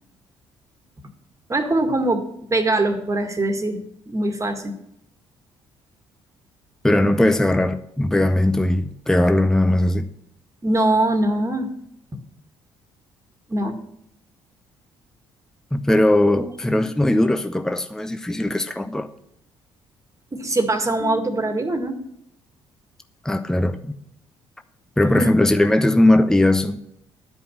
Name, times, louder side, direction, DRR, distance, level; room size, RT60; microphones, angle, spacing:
voice 1, 1.5-3.8 4.1-4.7 10.6-11.7 13.5-13.8 16.4-16.9 20.3-22.0 25.0-25.3, right 2 dB, 25° right, 1.8 m, -22 dB
voice 2, 6.8-10.1 15.7-19.1 23.2-23.9 25.0-26.8, left 1 dB, 5° left, 0.7 m, -19 dB
12.0 x 5.4 x 7.3 m
hypercardioid pair, 45°, 13 cm